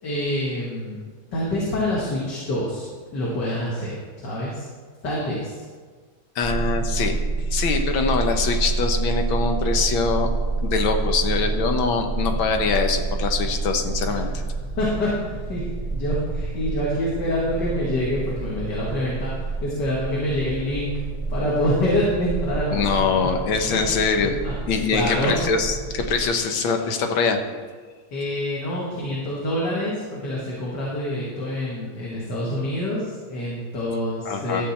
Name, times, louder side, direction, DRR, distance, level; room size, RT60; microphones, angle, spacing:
voice 1, 0.0-0.9 1.3-4.7 5.0-5.7 14.1-14.4 14.8-15.6 15.9-20.9 21.3-23.3 23.7-23.8 24.4-24.5 24.9-25.3 28.1-34.6, left 1 dB, 60° left, -6 dB, 2.6 m, -26 dB
voice 2, 6.4-7.2 7.5-10.3 10.6-14.3 22.7-24.4 24.7-27.4 34.3-34.6, left 4 dB, 80° left, 5 dB, 1.8 m, -23 dB
sound 1, 6.4-26.2, right 3 dB, ahead, 1.4 m, -28 dB
13.0 x 7.9 x 4.3 m, 1.5 s
omnidirectional pair, 2.2 m